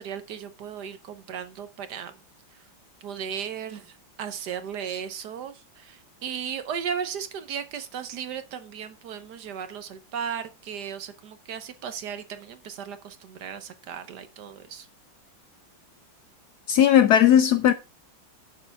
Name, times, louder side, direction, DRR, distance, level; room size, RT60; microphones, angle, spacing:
voice 1, 0.0-2.2 2.5-2.6 3.0-14.9, right 8 dB, 65° right, 1.3 m, -36 dB
voice 2, 16.7-17.7, left 10 dB, 70° left, 0.9 m, -17 dB
9.8 x 6.7 x 3.4 m
omnidirectional pair, 2.1 m